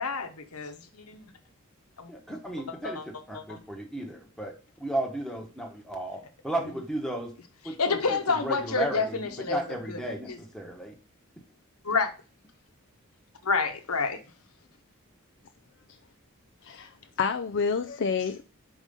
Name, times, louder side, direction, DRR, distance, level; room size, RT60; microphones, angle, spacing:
voice 1, 0.0-1.3 2.0-2.1 2.7-3.0 3.3-3.6 7.8-9.6 9.9-10.0 10.3-10.4 11.8-12.1 13.4-14.2, left 4 dB, 90° left, 1.2 m, -29 dB
voice 2, 2.1-4.5 4.8-7.3 7.6-10.9, right 1 dB, 5° left, 1.1 m, -34 dB
voice 3, 17.2-18.4, left 5 dB, 55° left, 0.4 m, -28 dB
5.1 x 5.0 x 5.3 m
head